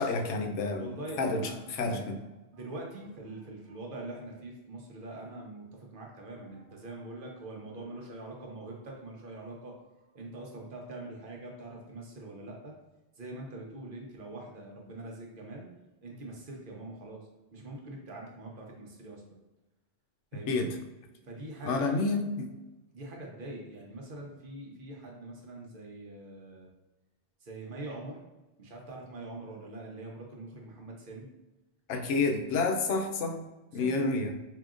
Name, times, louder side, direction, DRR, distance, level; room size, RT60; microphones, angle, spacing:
voice 1, 0.0-2.2 20.3-20.8 21.6-22.5 31.9-33.4 33.7-34.4, left 3 dB, 80° left, 4 dB, 0.9 m, -29 dB
voice 2, 0.8-2.0 2.5-5.6 5.9-12.7 13.2-15.7 16.0-19.4 20.3-20.6 21.2-22.1 22.9-26.7 27.4-28.2 28.6-31.3 32.0-32.2 33.7-33.9, right 2 dB, 50° right, -1 dB, 1.0 m, -43 dB
5.0 x 2.8 x 2.4 m, 1.0 s
omnidirectional pair, 1.2 m